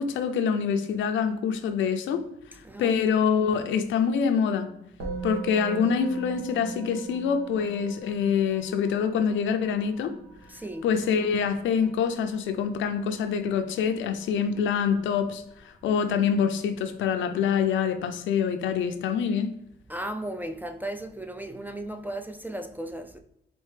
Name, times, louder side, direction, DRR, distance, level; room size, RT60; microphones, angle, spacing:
voice 1, 0.0-2.2 2.8-4.7 5.2-10.1 10.8-19.5, left 7 dB, 75° left, 0.5 m, -25 dB
voice 2, 2.6-3.0 10.5-10.9 19.9-23.2, right 1 dB, 10° right, 0.3 m, -35 dB
Musical instrument, 5.0-14.5, right 6 dB, 90° right, 1.2 m, -41 dB
4.3 x 2.7 x 3.2 m
cardioid pair, 90°, 20 cm